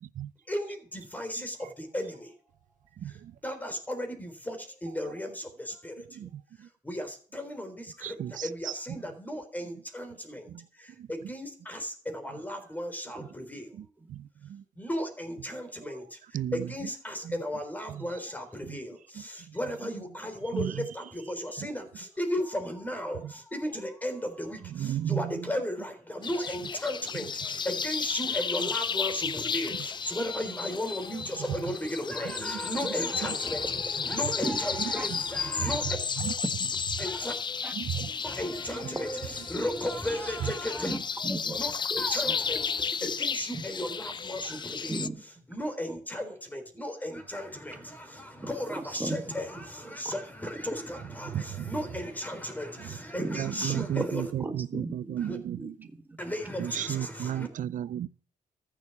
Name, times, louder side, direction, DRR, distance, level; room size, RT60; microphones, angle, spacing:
voice 1, 0.5-2.4 3.0-6.2 6.6-13.9 14.8-36.0 37.0-37.3 38.2-41.0 41.5-45.1 45.5-54.3 55.2-55.4 56.2-57.5, left 1 dB, 10° left, 3.8 m, -35 dB
voice 2, 3.0-3.3 6.1-6.7 8.0-9.0 10.5-10.6 11.0-11.1 14.1-14.6 16.3-16.7 17.3-17.4 17.9-18.0 18.7-18.8 19.5-19.6 20.5-20.8 21.6-21.7 23.2-23.3 24.7-25.3 32.4-32.6 36.2-36.3 37.7-38.1 40.4-40.5 51.2-51.7 52.8-52.9 53.3-55.9 56.6-58.1, right 11 dB, 70° right, 0.6 m, -34 dB
sound 1, 26.2-45.1, left 6 dB, 35° left, 0.5 m, -33 dB
voice 3, 37.6-38.2 40.8-41.6 41.9-42.3 43.0-43.1 43.5-43.6 44.4-44.6 44.9-45.2 46.7-46.8 48.4-49.3 49.5-49.6 50.0-50.1 51.2-51.6 53.2-53.5 54.0-54.1 54.4-55.2 55.6-56.6 57.0-57.1, right 2 dB, 15° right, 1.8 m, -37 dB
14.5 x 7.0 x 7.1 m
cardioid pair, 115°, 14 cm